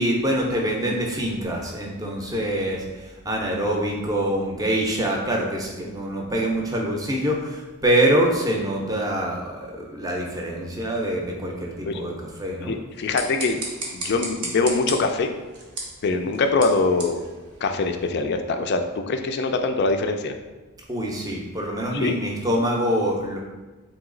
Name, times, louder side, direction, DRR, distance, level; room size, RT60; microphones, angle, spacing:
voice 1, 0.0-2.8 3.2-12.7 20.9-23.4, right 1 dB, 15° right, -1 dB, 0.6 m, -25 dB
voice 2, 12.6-13.6 13.9-15.3 16.0-17.2 17.6-20.3 21.9-22.2, left 3 dB, 45° left, 6 dB, 0.3 m, -23 dB
sound 1, 12.9-18.2, right 2 dB, 85° right, 1.0 m, -36 dB
3.9 x 2.9 x 3.7 m, 1.2 s
head